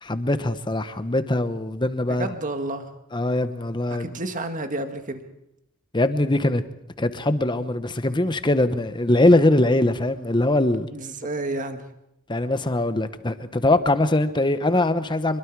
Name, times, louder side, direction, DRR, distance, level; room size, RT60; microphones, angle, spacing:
voice 1, 0.0-2.3 3.1-4.1 5.9-6.6 7.0-10.9 12.3-15.4, left 1 dB, 20° left, 11 dB, 1.0 m, -22 dB
voice 2, 2.1-2.9 3.9-5.2 10.9-11.8, right 2 dB, 35° right, 7 dB, 1.8 m, -30 dB
25.5 x 22.0 x 4.7 m, 0.83 s
head